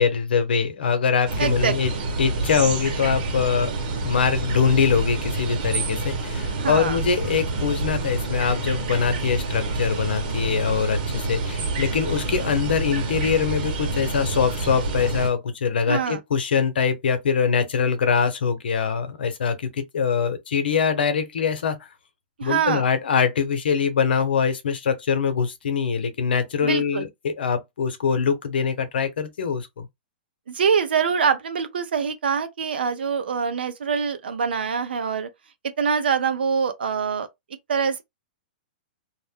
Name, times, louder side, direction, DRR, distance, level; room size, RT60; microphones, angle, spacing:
voice 1, 0.0-1.9 2.2-21.8 22.4-29.9, left 6 dB, 80° left, 0.8 m, -23 dB
sound 1, 1.3-15.3, right 3 dB, 55° right, 1.1 m, -28 dB
voice 2, 1.4-2.0 6.6-7.0 15.9-16.2 22.4-22.8 26.6-27.0 30.5-35.3 35.8-37.3 37.7-38.0, right 6 dB, 90° right, 0.7 m, -24 dB
2.5 x 2.1 x 3.5 m
hypercardioid pair, 145°, 5 cm